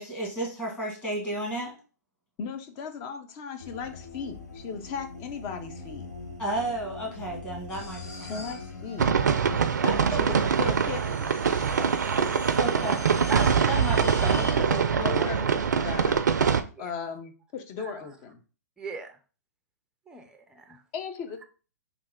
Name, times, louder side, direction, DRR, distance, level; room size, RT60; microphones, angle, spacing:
voice 1, 0.0-1.7 6.4-8.5 9.8-10.2 11.8-11.9 12.6-13.0 13.7-14.6, right 1 dB, 15° left, -2 dB, 1.6 m, -32 dB
voice 2, 2.4-6.1 8.2-9.1 10.1-11.4 13.9-16.5 16.8-18.4 20.9-21.5, left 6 dB, 35° left, 7 dB, 0.6 m, -37 dB
sound 1, 3.6-9.7, left 4 dB, 75° left, 0.9 m, -42 dB
sound 2, 7.7-16.2, left 3 dB, 60° left, 1.5 m, -43 dB
sound 3, 9.0-16.6, right 6 dB, 80° right, 0.4 m, -24 dB
voice 3, 13.3-14.1 15.2-15.4 16.8-16.9 17.8-18.2 18.8-19.2 20.1-20.8, right 4 dB, 5° right, 6 dB, 0.4 m, -39 dB
3.4 x 2.4 x 3.4 m, 0.35 s
hypercardioid pair, 120°, 9 cm